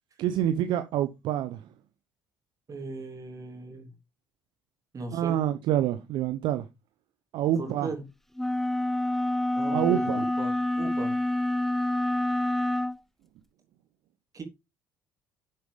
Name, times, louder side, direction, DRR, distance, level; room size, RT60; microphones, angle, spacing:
voice 1, 0.2-1.6 5.1-6.6 7.3-7.9 9.7-10.2, right 11 dB, 65° right, 0.8 m, -27 dB
voice 2, 2.7-3.9 4.9-5.4 7.6-8.0 9.5-11.2 14.3-14.4, right 3 dB, 40° right, 3.0 m, -38 dB
sound 1, 8.4-13.0, left 1 dB, 5° left, 0.5 m, -27 dB
12.0 x 7.8 x 3.4 m
hypercardioid pair, 55°, 9 cm